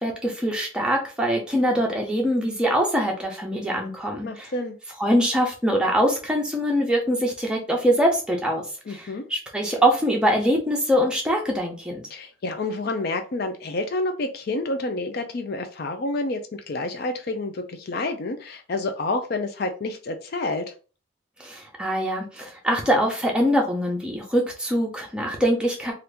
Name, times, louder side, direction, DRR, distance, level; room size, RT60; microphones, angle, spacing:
voice 1, 0.0-4.5 5.0-8.6 8.9-12.1 21.4-25.9, equal, 5° right, 0 dB, 0.7 m, -23 dB
voice 2, 4.2-4.8 8.9-9.2 12.1-20.7, left 2 dB, 50° left, 6 dB, 0.4 m, -29 dB
2.8 x 2.5 x 3.4 m, 0.35 s
head